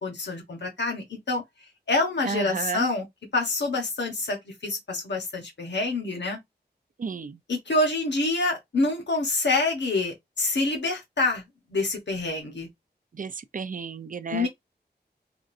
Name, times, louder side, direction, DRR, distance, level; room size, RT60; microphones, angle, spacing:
voice 1, 0.0-1.4 1.9-3.0 3.3-4.4 4.6-6.4 7.5-11.4 11.7-12.7 14.3-14.5, left 2 dB, 85° left, 1.2 m, -26 dB
voice 2, 2.3-2.9 7.0-7.4 13.1-14.5, right 5 dB, 50° right, 0.4 m, -32 dB
5.0 x 2.5 x 2.6 m
wide cardioid pair, 85°, 18 cm